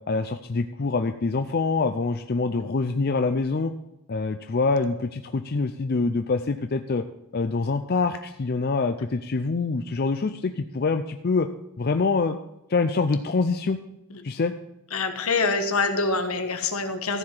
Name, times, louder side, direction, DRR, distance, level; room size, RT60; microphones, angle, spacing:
voice 1, 0.1-3.7 4.1-7.0 7.3-11.5 11.8-12.4 12.7-13.8 14.2-14.5, left 4 dB, 45° left, 8 dB, 0.5 m, -25 dB
voice 2, 14.9-17.2, left 3 dB, 75° left, 7 dB, 1.3 m, -25 dB
14.5 x 4.9 x 7.4 m, 0.90 s
head